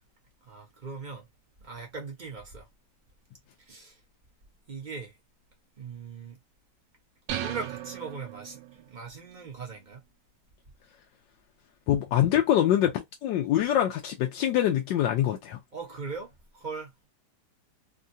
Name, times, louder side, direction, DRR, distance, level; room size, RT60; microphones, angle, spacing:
voice 1, 0.4-1.3 1.6-2.7 3.6-4.0 4.7-5.1 5.8-6.4 7.3-10.0 15.2-15.3 15.7-17.1, right 4 dB, 30° right, 1.0 m, -40 dB
sound 1, 7.3-8.9, right 11 dB, 85° right, 1.2 m, -36 dB
voice 2, 11.9-15.6, left 11 dB, 85° left, 1.3 m, -24 dB
3.7 x 2.2 x 2.6 m
omnidirectional pair, 1.9 m